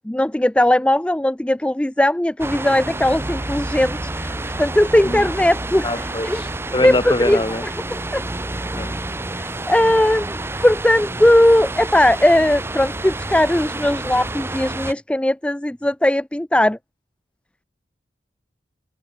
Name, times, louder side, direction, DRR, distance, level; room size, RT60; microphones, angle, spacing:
voice 1, 0.0-6.4 6.8-7.4 7.9-8.2 9.4-10.4 10.6-16.8, left 1 dB, 5° left, 0.4 m, -18 dB
sound 1, 2.4-14.9, right 2 dB, 15° right, 0.8 m, -29 dB
voice 2, 5.8-7.6 8.8-9.0, left 2 dB, 25° left, 1.7 m, -24 dB
head